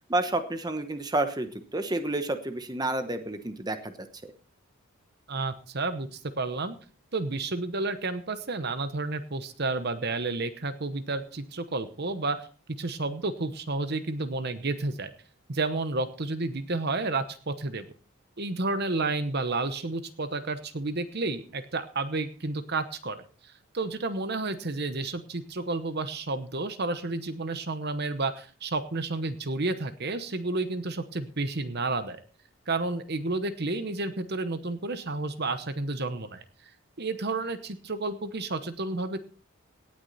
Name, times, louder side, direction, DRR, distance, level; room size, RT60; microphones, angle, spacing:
voice 1, 0.1-3.9 4.2-4.3, right 2 dB, 20° right, 9 dB, 1.1 m, -30 dB
voice 2, 5.3-6.8 7.1-12.5 12.8-15.1 15.5-17.9 18.4-32.2 32.7-36.4 37.0-39.2, right 3 dB, 50° right, 11 dB, 1.0 m, -31 dB
18.0 x 9.8 x 4.2 m, 0.40 s
head